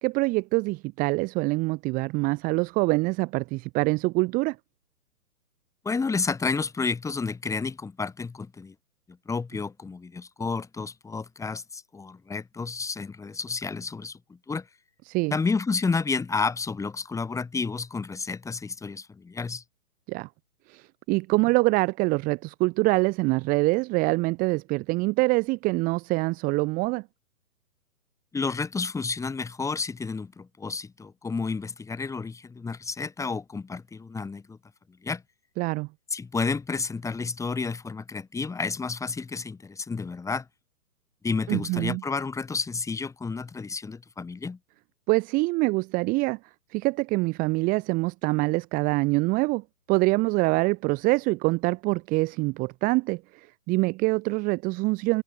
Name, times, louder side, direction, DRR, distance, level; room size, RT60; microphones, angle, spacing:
voice 1, 0.0-4.6 15.1-15.3 20.1-20.3 20.7-27.0 35.6-35.9 41.5-42.0 45.1-46.4 46.7-55.2, right 24 dB, 20° right, 1.4 m, -25 dB
voice 2, 5.8-8.8 9.1-14.7 15.3-19.6 28.3-34.6 34.9-35.2 36.1-40.5 41.2-44.6, left 4 dB, 5° left, 5.4 m, -31 dB
figure-of-eight pair, 125°, 46 cm